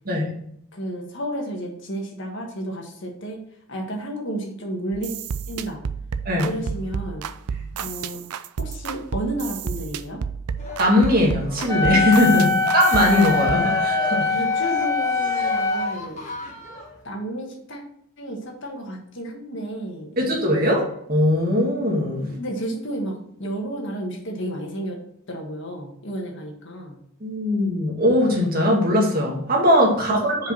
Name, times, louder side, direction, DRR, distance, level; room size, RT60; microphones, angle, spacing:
voice 1, 0.7-3.4 3.7-5.1 5.5-5.8 6.4-7.2 7.8-8.2 8.6-10.2 12.3-12.6 14.3-16.3 17.0-17.8 18.2-20.3 22.4-25.0 25.3-27.0 30.1-30.2, right 1 dB, 55° left, 1 dB, 1.6 m, -32 dB
sound 1, 4.9-13.5, right 6 dB, 85° right, 0.4 m, -31 dB
voice 2, 6.3-6.6 10.8-14.3 20.2-20.8 21.1-22.3 27.2-30.5, left 1 dB, 40° right, -1 dB, 1.9 m, -20 dB
Cheering, 10.6-17.0, left 2 dB, 30° left, 1.5 m, -34 dB
Wind instrument woodwind instrument, 11.7-15.9, left 3 dB, 15° left, 0.8 m, -22 dB
5.2 x 5.1 x 6.1 m, 0.71 s
head